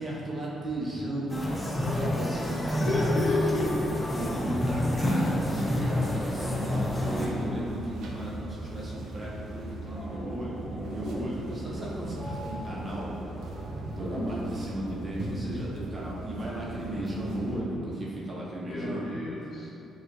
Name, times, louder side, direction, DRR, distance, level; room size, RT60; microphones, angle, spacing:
voice 1, 0.0-1.5 1.8-3.2 4.1-13.3 13.8-19.2 19.6-19.7, right 1 dB, 35° right, -5 dB, 0.9 m, -35 dB
sound 1, 1.3-7.3, left 1 dB, 15° left, 0.6 m, -28 dB
voice 2, 2.8-3.9 18.7-19.7, left 2 dB, 50° left, -5 dB, 0.9 m, -30 dB
sound 2, 5.8-17.6, right 2 dB, 75° right, 0.5 m, -39 dB
sound 3, 9.8-14.6 14.8-15.1, right 1 dB, 10° right, 1.2 m, -40 dB
6.1 x 2.4 x 2.7 m, 2.8 s
cardioid pair, 90°, 0 cm